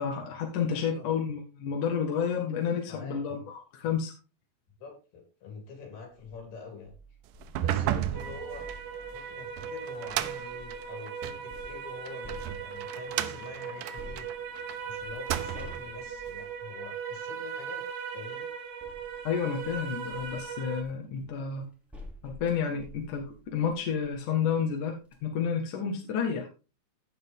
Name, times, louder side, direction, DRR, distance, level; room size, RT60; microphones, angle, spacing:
voice 1, 0.0-4.1 19.2-21.7 22.2-25.0 25.2-26.5, left 7 dB, 60° left, 1 dB, 2.9 m, -30 dB
voice 2, 0.7-1.1 2.7-3.5 4.8-6.9 7.6-8.7 9.1-14.3 14.8-17.8 18.1-18.5, left 5 dB, 75° left, 2 dB, 5.8 m, -46 dB
sound 1, 6.0-6.4 6.9-10.9 11.5-13.1 14.0-17.3 18.3-24.2 24.6-24.7 25.0-25.2, left 1 dB, ahead, 2.1 m, -51 dB
sound 2, 7.4-11.5 12.1-14.8 15.1-15.9, right 12 dB, 85° right, 1.8 m, -34 dB
sound 3, 8.1-20.8, right 7 dB, 70° right, 2.9 m, -39 dB
15.5 x 5.4 x 3.7 m, 0.31 s
omnidirectional pair, 4.6 m